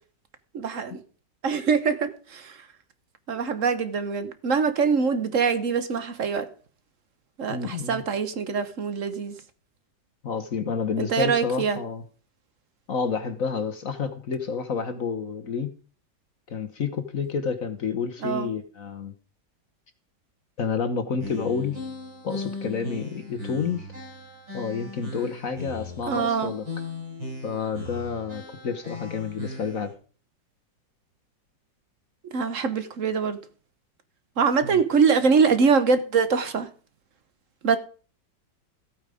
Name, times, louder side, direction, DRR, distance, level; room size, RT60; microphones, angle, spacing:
voice 1, 0.5-1.0 1.4-2.6 3.3-6.5 7.4-9.4 11.0-11.8 18.2-18.5 26.1-26.5 32.3-33.4 34.4-36.7 37.6-37.8, right 5 dB, 50° right, 1.3 m, -23 dB
voice 2, 7.5-8.0 10.2-12.0 12.9-15.7 16.5-19.1 20.6-21.8 22.2-23.9 24.5-26.6 27.4-29.9 34.6-34.8, left 5 dB, 55° left, 1.3 m, -29 dB
sound 1, 21.2-29.9, left 2 dB, 85° right, 7.7 m, -37 dB
14.5 x 8.8 x 5.0 m
omnidirectional pair, 2.0 m